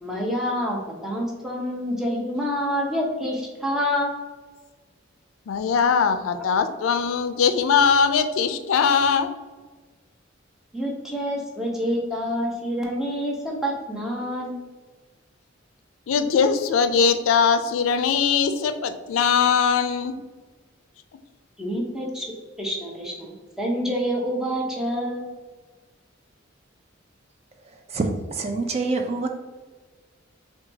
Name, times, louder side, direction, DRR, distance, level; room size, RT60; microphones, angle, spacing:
voice 1, 0.0-4.2 10.7-14.6 21.6-22.2 22.6-25.3, equal, 5° right, -2 dB, 0.7 m, -27 dB
voice 2, 5.5-9.3 16.1-20.1, left 6 dB, 85° left, 9 dB, 0.4 m, -21 dB
voice 3, 27.9-29.3, right 3 dB, 30° right, 4 dB, 0.4 m, -26 dB
5.7 x 2.3 x 2.7 m, 1.3 s
head